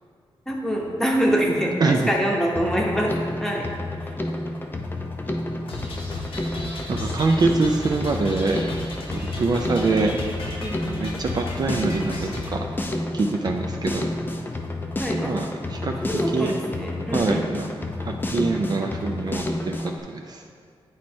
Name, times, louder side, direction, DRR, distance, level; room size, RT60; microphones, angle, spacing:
voice 1, 0.5-3.1 3.4-3.7 9.8-10.0 10.6-10.8 15.0-15.4 16.0-17.5, equal, 5° left, -2 dB, 0.9 m, -25 dB
voice 2, 1.8-2.1 6.9-8.7 9.4-10.1 10.9-12.6 13.1-14.1 15.2-16.6 17.1-17.7 18.0-20.4, right 3 dB, 45° right, 2 dB, 0.4 m, -24 dB
Drum kit, 2.6-20.0, left 1 dB, 20° left, 0.5 m, -30 dB
sound 1, 5.7-12.5, left 1 dB, 70° left, 1.0 m, -35 dB
9.4 x 3.2 x 4.3 m, 2.1 s
wide cardioid pair, 130°, 10 cm